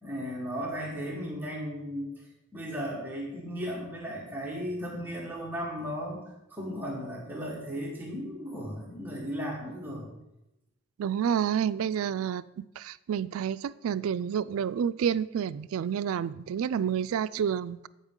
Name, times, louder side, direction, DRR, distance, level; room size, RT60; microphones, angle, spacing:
voice 1, 0.0-2.1 2.5-10.1, equal, 10° right, -3 dB, 1.5 m, -36 dB
voice 2, 11.0-17.9, right 8 dB, 80° right, 16 dB, 0.3 m, -29 dB
14.0 x 5.3 x 3.7 m, 0.91 s
head